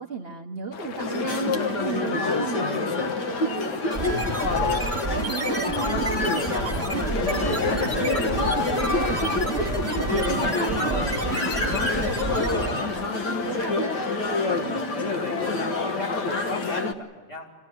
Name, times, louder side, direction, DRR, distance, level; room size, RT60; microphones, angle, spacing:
voice 1, 0.0-2.9 3.3-4.2 4.5-9.2 9.5-11.8 12.6-14.0, right 5 dB, 45° right, 3 dB, 0.8 m, -35 dB
sound 1, 0.7-16.8, left 5 dB, 85° left, 1.9 m, -38 dB
sound 2, 1.0-16.9, left 3 dB, 55° left, 1.8 m, -27 dB
voice 2, 2.1-3.0 8.8-9.6 10.5-11.2 12.5-12.9 14.6-17.5, left 1 dB, 20° left, -1 dB, 3.7 m, -40 dB
sound 3, 3.9-13.1, right 2 dB, 5° right, 2.5 m, -30 dB
25.0 x 17.0 x 9.9 m, 1.4 s
omnidirectional pair, 2.2 m